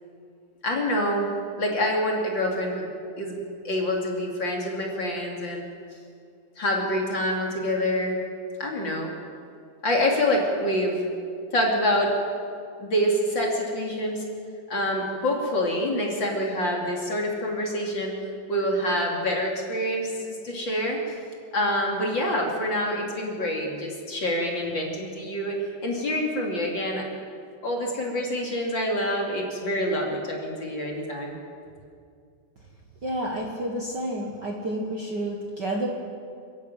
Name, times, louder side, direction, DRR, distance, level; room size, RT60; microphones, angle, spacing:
voice 1, 0.6-1.3 1.6-2.9 3.2-5.6 6.6-8.2 8.6-9.1 9.8-11.1 11.5-12.2 12.8-14.2 14.7-18.1 18.5-21.0 21.5-27.0 27.6-31.3, equal, 40° left, -1 dB, 3.3 m, -26 dB
voice 2, 33.0-35.9, right 1 dB, 40° right, -1 dB, 2.0 m, -30 dB
28.0 x 10.5 x 9.0 m, 2.4 s
omnidirectional pair, 3.5 m